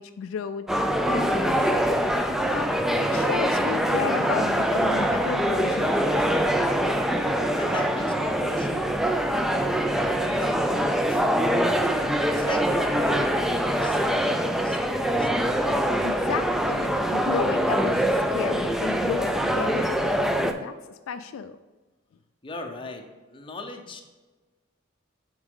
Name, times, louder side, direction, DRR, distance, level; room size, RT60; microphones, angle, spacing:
voice 1, 0.0-1.7 2.5-2.7 3.0-6.8 16.0-20.7 21.1-21.6, left 6 dB, 75° left, 10 dB, 0.3 m, -33 dB
sound 1, 0.7-20.5, equal, ahead, 0.3 m, -24 dB
Wind instrument woodwind instrument, 4.1-8.0, equal, 45° right, 1.0 m, -44 dB
voice 2, 7.6-9.0 9.4-9.8 10.1-11.5 12.3-15.5 22.4-24.0, left 2 dB, 25° left, 4 dB, 0.7 m, -40 dB
8.0 x 3.6 x 3.6 m, 1.2 s
head